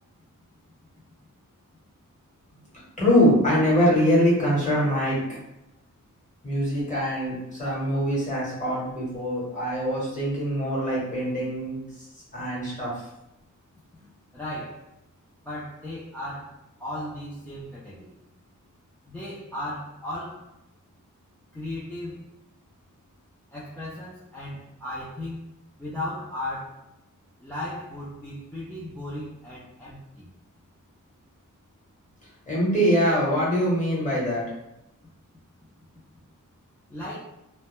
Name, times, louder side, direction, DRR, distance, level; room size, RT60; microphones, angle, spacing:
voice 1, 3.0-5.2 6.4-11.8 12.3-12.9 32.5-34.4, equal, 25° left, -7 dB, 0.9 m, -23 dB
voice 2, 14.0-14.9 15.4-16.5 16.8-18.2 19.1-20.5 21.5-22.2 23.5-25.5 25.8-26.8 27.4-30.3 36.9-37.2, left 1 dB, 5° left, -9 dB, 0.3 m, -36 dB
2.1 x 2.1 x 2.9 m, 0.88 s
wide cardioid pair, 165°, 32 cm